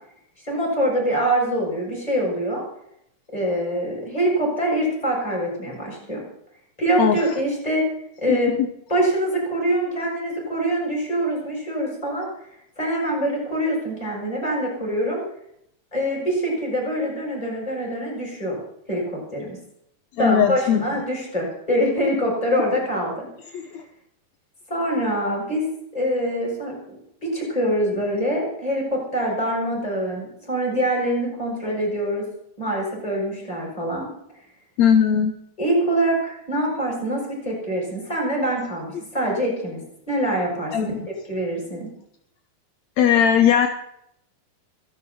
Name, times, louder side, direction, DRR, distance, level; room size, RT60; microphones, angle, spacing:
voice 1, 0.4-2.6 3.3-6.2 6.8-7.9 8.2-8.6 8.9-12.3 12.8-15.2 15.9-18.6 18.9-19.6 20.2-23.3 24.7-25.6 25.9-26.7 27.2-32.3 32.6-34.1 35.6-40.9 41.3-41.9, right 1 dB, 10° left, -2 dB, 7.5 m, -24 dB
voice 2, 20.2-20.8 23.5-23.8 34.8-35.3 40.7-41.0 43.0-43.7, left 8 dB, 70° left, 6 dB, 1.7 m, -18 dB
26.0 x 11.5 x 4.3 m, 0.75 s
omnidirectional pair, 4.3 m